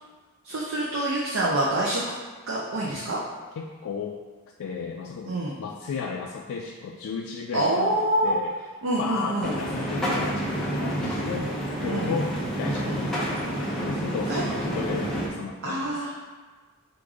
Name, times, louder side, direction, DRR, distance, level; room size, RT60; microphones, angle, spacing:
voice 1, 0.4-2.2 2.5-3.2 5.3-5.5 7.5-8.3 8.8-9.6 11.9-12.1 12.8-13.0 14.3-14.4 15.6-16.1, right 1 dB, 60° right, -5 dB, 0.6 m, -26 dB
voice 2, 3.6-4.2 4.6-7.9 8.2-8.5 9.0-13.5 13.8-16.1, left 5 dB, 75° left, 0 dB, 0.3 m, -34 dB
sound 1, 9.4-15.3, right 1 dB, ahead, 0.6 m, -29 dB
4.7 x 2.5 x 3.6 m, 1.4 s
head